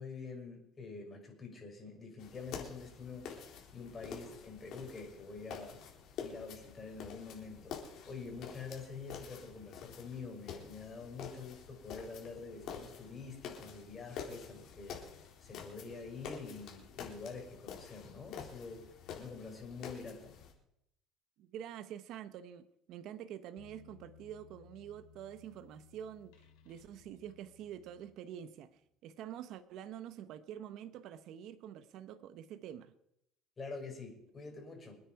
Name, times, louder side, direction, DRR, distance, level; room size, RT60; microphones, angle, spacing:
voice 1, 0.0-3.3 3.7-5.8 6.2-15.0 15.4-18.8 19.1-20.3 33.6-35.0, left 4 dB, 25° left, 1 dB, 6.2 m, -46 dB
sound 1, 2.2-20.5, left 7 dB, 60° left, 3.8 m, -48 dB
voice 2, 21.4-32.9, right 10 dB, 60° right, 11 dB, 1.0 m, -47 dB
sound 2, 23.6-28.5, left 7 dB, 90° left, 3.0 m, -61 dB
25.5 x 9.6 x 4.8 m, 0.79 s
cardioid pair, 120°, 0 cm